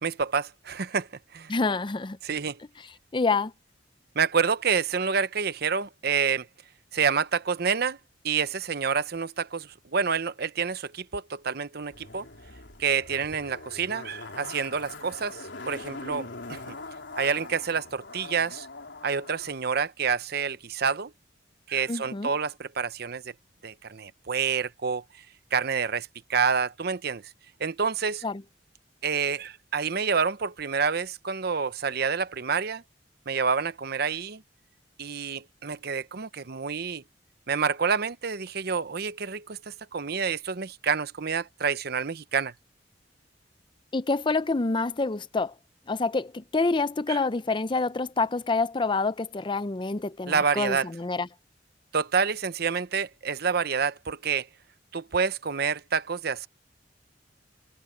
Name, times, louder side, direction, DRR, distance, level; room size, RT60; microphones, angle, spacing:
voice 1, 0.0-1.1 1.3-1.5 2.2-2.6 4.1-6.5 6.9-8.0 8.2-12.3 12.8-16.8 17.2-18.7 19.0-21.1 21.7-23.3 23.6-25.0 25.5-27.2 27.6-28.2 29.0-32.8 33.3-34.4 35.0-37.0 37.5-42.5 47.1-47.2 50.3-50.9 51.9-54.5 54.9-56.5, right 6 dB, 60° right, 0.8 m, -28 dB
voice 2, 1.5-2.2 3.1-3.5 21.9-22.3 28.2-28.4 43.9-45.5 45.9-51.3, left 3 dB, 25° left, 0.5 m, -27 dB
Zipper (clothing), 11.9-19.5 19.8-19.9, left 3 dB, 80° left, 3.6 m, -42 dB
head